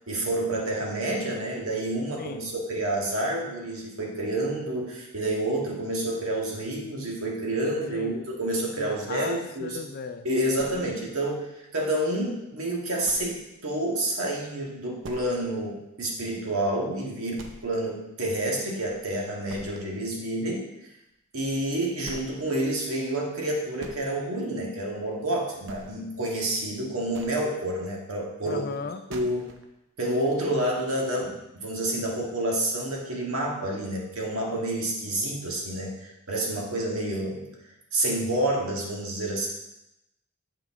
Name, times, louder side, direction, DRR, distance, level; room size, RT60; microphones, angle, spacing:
voice 1, 0.1-9.8 10.2-20.7 21.3-28.6 29.1-29.5 30.0-37.5 37.9-39.5, right 1 dB, 90° right, -2 dB, 1.7 m, -29 dB
voice 2, 2.2-2.6 7.9-8.3 8.8-10.3 28.4-29.0, left 4 dB, 45° left, 9 dB, 0.5 m, -37 dB
sound 1, 10.6-11.3 11.8-11.9 12.3-12.4 13.1-13.5 13.8-13.9 14.3-14.4 15.0-15.6 15.9-16.0 16.5-16.6 17.4-18.0 18.3-19.1 19.5-20.0 21.3-21.4 22.0-22.4 23.4-24.0 25.0-25.3 25.6-26.2 26.9-27.5 28.7-28.8 29.1-29.6, right 2 dB, 60° right, 0.7 m, -44 dB
7.7 x 5.2 x 3.6 m, 0.90 s
head